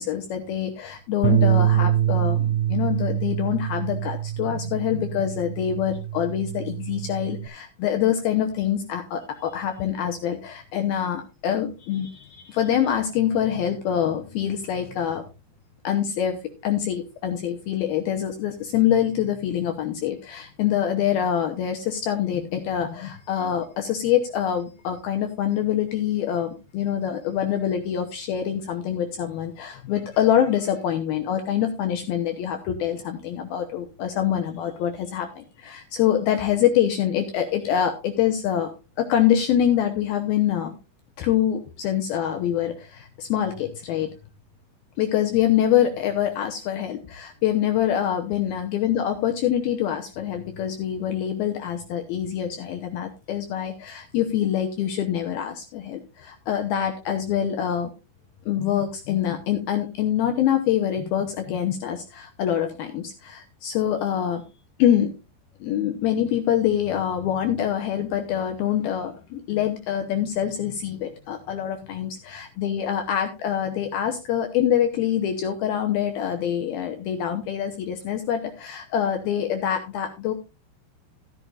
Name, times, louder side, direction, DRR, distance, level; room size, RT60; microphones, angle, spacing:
voice 1, 0.0-15.2 15.8-38.7 39.0-40.7 41.2-44.1 45.0-57.9 58.5-64.4 64.8-65.1 65.6-80.3, left 10 dB, 80° left, 5 dB, 2.2 m, -25 dB
Bass guitar, 1.2-7.5, right 11 dB, 80° right, 2.8 m, -25 dB
14.0 x 11.0 x 2.5 m, 0.28 s
omnidirectional pair, 5.5 m